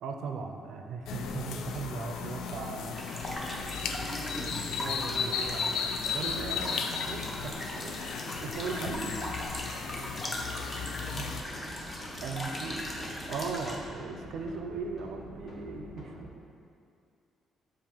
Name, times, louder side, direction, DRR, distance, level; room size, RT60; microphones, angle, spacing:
voice 1, 0.0-3.0 4.8-8.0 8.4-9.2 9.9-10.1 11.1-11.4 12.2-16.3, right 4 dB, 65° right, 4 dB, 0.5 m, -38 dB
sound 1, 1.1-11.4, left 6 dB, 85° left, 0.4 m, -35 dB
sound 2, 2.9-13.8, left 1 dB, 15° left, 0.7 m, -39 dB
voice 2, 3.3-5.0 9.4-11.5, left 1 dB, 65° left, -5 dB, 1.4 m, -48 dB
sound 3, 11.2-16.2, left 1 dB, 45° left, 1.1 m, -47 dB
7.4 x 2.5 x 5.5 m, 2.4 s
cardioid pair, 170°, 0 cm